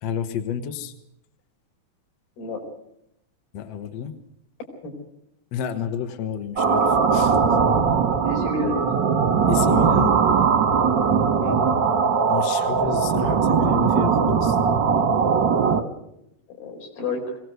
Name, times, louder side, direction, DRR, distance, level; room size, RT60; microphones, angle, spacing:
voice 1, 0.0-0.9 3.5-4.1 5.5-7.6 9.5-10.2 12.3-14.6, left 8 dB, 60° left, 7 dB, 1.7 m, -30 dB
sound 1, 6.6-15.8, right 6 dB, 55° right, 1.2 m, -20 dB
voice 2, 8.3-8.9 11.4-11.6 16.5-17.4, left 2 dB, 75° left, 1 dB, 6.5 m, -30 dB
22.0 x 18.0 x 8.0 m, 0.78 s
omnidirectional pair, 4.3 m